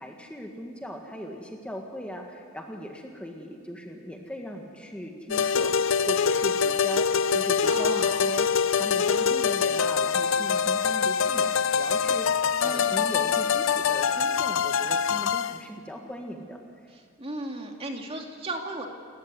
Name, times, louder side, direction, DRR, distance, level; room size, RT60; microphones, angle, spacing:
voice 1, 0.0-8.5 8.8-16.6, equal, 5° left, 1 dB, 1.8 m, -38 dB
sound 1, 5.3-15.6, left 6 dB, 70° left, 0.6 m, -24 dB
voice 2, 7.6-8.3 12.6-13.1 16.9-18.9, right 2 dB, 30° right, 2 dB, 2.5 m, -36 dB
30.0 x 14.5 x 9.6 m, 2.1 s
head